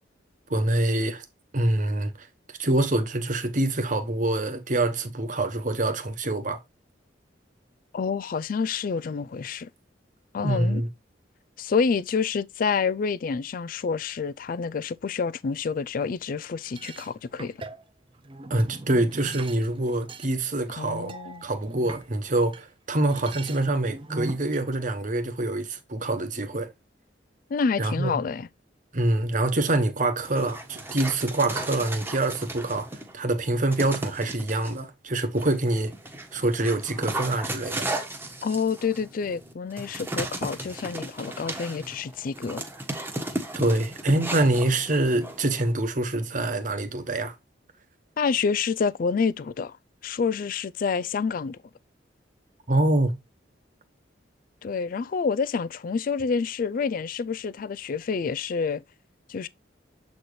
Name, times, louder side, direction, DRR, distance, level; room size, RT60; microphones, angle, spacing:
voice 1, 0.5-1.2 1.5-2.3 2.6-6.6 10.4-10.9 18.5-21.1 21.4-26.7 27.8-28.1 28.9-35.9 36.3-37.9 43.5-47.3 52.7-53.2, right 2 dB, 45° right, 1.1 m, -25 dB
voice 2, 7.9-9.7 10.3-10.8 11.6-17.6 20.8-21.4 27.5-28.5 38.4-42.6 48.2-49.8 50.0-51.6 54.6-58.8 59.3-59.5, left 5 dB, 50° left, 0.3 m, -28 dB
sound 1, 16.6-22.6 23.0-24.6, right 2 dB, 30° right, 0.6 m, -41 dB
Dog, 30.2-33.1 33.7-34.7 35.4-45.7, right 1 dB, 10° right, 1.2 m, -35 dB
7.8 x 4.2 x 3.2 m
head